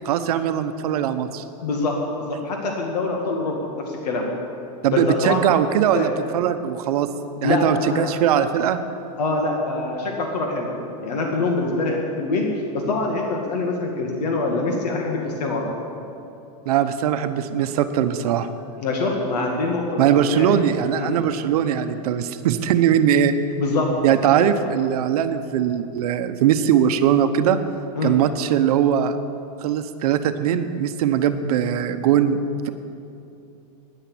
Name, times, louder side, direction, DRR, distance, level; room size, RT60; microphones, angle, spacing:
voice 1, 0.0-1.4 4.8-7.1 7.4-8.8 16.7-18.5 20.0-23.3 24.0-27.6 28.0-29.2 29.6-32.4 32.6-32.7, right 9 dB, 70° right, 9 dB, 0.8 m, -20 dB
voice 2, 1.6-4.3 4.9-5.5 5.9-6.1 7.4-8.1 9.2-10.7 11.0-12.5 12.7-15.6 18.8-20.0 20.3-20.6 20.9-21.1 23.5-23.9 24.2-24.3 24.6-24.7 28.0-28.1, left 3 dB, 85° left, 0 dB, 2.2 m, -24 dB
10.5 x 10.0 x 8.5 m, 2.8 s
supercardioid pair, 155°, 20 cm